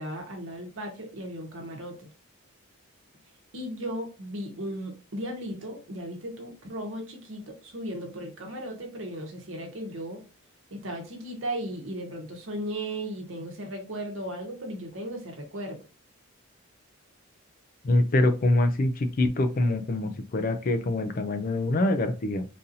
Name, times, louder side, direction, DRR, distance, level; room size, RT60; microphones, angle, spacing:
voice 1, 0.0-2.1 3.5-10.2 10.7-15.8, right 1 dB, 65° right, 3 dB, 1.0 m, -36 dB
voice 2, 17.8-22.5, left 2 dB, 40° left, 8 dB, 0.4 m, -25 dB
3.9 x 2.7 x 2.6 m, 0.34 s
head